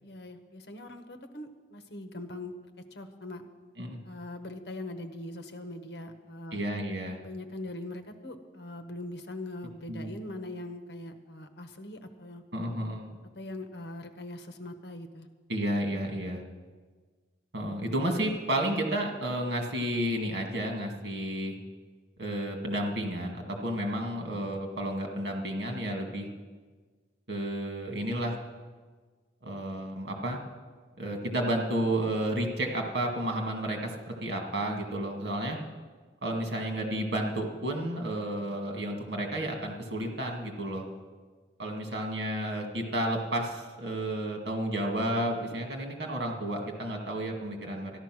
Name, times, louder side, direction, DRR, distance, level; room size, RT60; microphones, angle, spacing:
voice 1, 0.0-2.5 2.9-3.4 4.0-6.6 7.2-12.4 13.3-15.3, left 1 dB, 70° left, 8 dB, 1.1 m, -41 dB
voice 2, 6.5-7.2 9.9-10.1 12.5-13.1 15.5-16.4 17.5-21.6 22.2-26.3 27.3-28.4 29.4-30.4 31.0-35.6 36.2-40.9 41.6-47.9, right 1 dB, 75° right, 2 dB, 2.2 m, -31 dB
13.5 x 11.5 x 6.2 m, 1.4 s
head